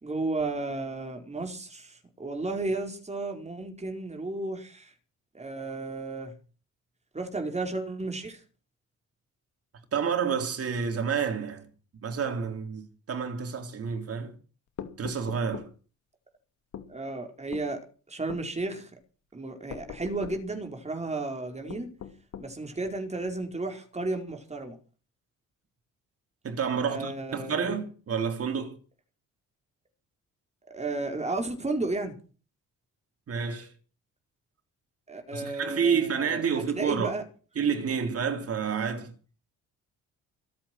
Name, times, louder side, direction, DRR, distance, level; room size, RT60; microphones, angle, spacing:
voice 1, 0.0-4.9 5.3-6.3 7.1-8.4 16.9-18.9 19.3-21.9 22.4-24.8 26.8-27.7 30.7-32.1 35.1-37.2, right 2 dB, 20° right, 4.9 m, -33 dB
voice 2, 9.9-11.7 12.0-14.3 15.0-15.7 26.4-28.8 33.3-33.7 35.3-37.1 37.6-39.1, right 6 dB, 50° right, 4.0 m, -29 dB
sound 1, 14.8-15.7 16.7-16.9 17.5-17.7 18.3-18.5 19.7-20.4 21.7-22.5, left 8 dB, 70° left, 2.6 m, -41 dB
25.5 x 8.7 x 6.2 m
cardioid pair, 90°, 30 cm